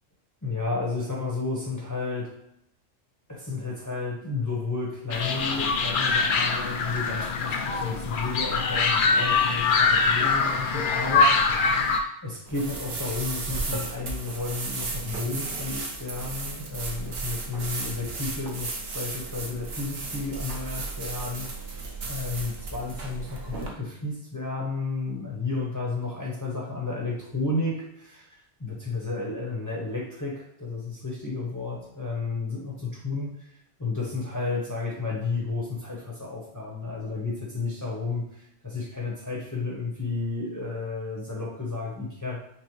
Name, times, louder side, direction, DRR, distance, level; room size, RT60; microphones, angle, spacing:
voice 1, 0.4-2.3 3.3-11.9 12.2-42.4, left 3 dB, 15° left, -4 dB, 0.8 m, -32 dB
sound 1, 5.1-12.0, left 4 dB, 65° left, 0.5 m, -23 dB
sound 2, 12.5-23.7, right 3 dB, 55° right, 0.9 m, -34 dB
5.9 x 2.1 x 3.1 m, 0.81 s
omnidirectional pair, 1.3 m